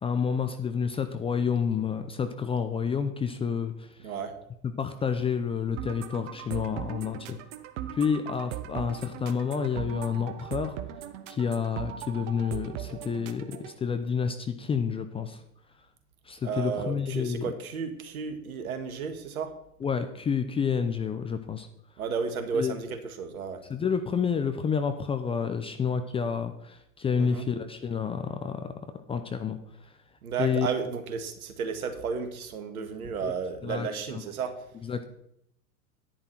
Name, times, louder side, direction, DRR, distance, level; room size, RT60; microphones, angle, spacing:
voice 1, 0.0-4.1 4.6-7.4 7.9-10.8 11.3-15.4 16.2-17.5 19.8-21.7 22.5-22.9 23.7-28.6 29.1-29.9 30.4-30.7 33.2-33.3 33.6-34.2 34.7-35.1, left 6 dB, 10° left, 8 dB, 0.6 m, -29 dB
sound 1, 5.8-13.8, right 11 dB, 50° right, 1.1 m, -39 dB
voice 2, 16.4-19.5 22.0-23.6 27.2-27.4 30.2-34.5, right 5 dB, 65° right, 8 dB, 1.9 m, -33 dB
10.5 x 10.5 x 4.4 m, 0.76 s
figure-of-eight pair, 95°, 46 cm